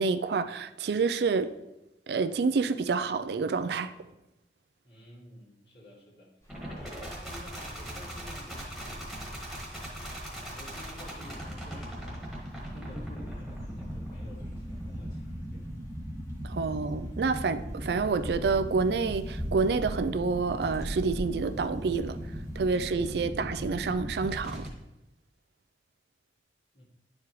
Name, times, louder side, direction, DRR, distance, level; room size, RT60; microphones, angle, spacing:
voice 1, 0.0-1.5 2.1-3.9 16.4-22.2 22.6-24.7, right 4 dB, 70° right, 0.4 m, -28 dB
voice 2, 4.8-6.3 6.7-9.7 10.0-12.3 12.6-15.8 26.7-26.8, left 1 dB, 65° left, 2.3 m, -50 dB
sound 1, 6.4-23.0, equal, 15° left, 1.3 m, -46 dB
sound 2, 6.5-24.7, equal, ahead, 1.5 m, -39 dB
10.5 x 4.8 x 3.1 m
head